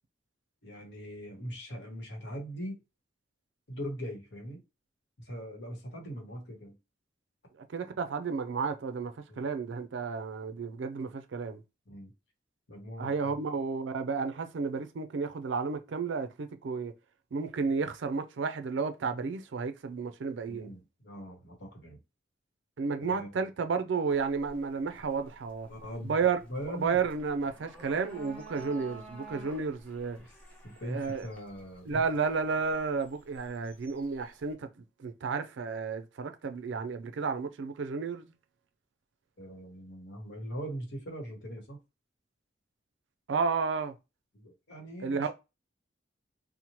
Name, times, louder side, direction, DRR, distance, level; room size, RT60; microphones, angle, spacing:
voice 1, 0.6-2.8 3.7-4.6 5.2-6.7 9.3-9.4 11.9-12.1 12.7-13.4 20.5-22.0 23.1-23.5 25.2-25.3 25.7-26.2 26.5-27.0 30.2-30.3 30.6-32.0 39.4-41.8 44.3-45.3, equal, 70° left, 1.0 m, -41 dB
voice 2, 7.7-11.6 13.0-16.9 17.3-20.7 22.8-25.7 26.0-26.4 26.7-30.2 30.8-31.3 31.9-34.7 35.0-38.3 43.3-43.9 45.0-45.3, right 5 dB, 75° right, 0.4 m, -32 dB
sound 1, 24.1-34.5, right 1 dB, 10° left, 0.6 m, -52 dB
2.8 x 2.1 x 2.9 m
head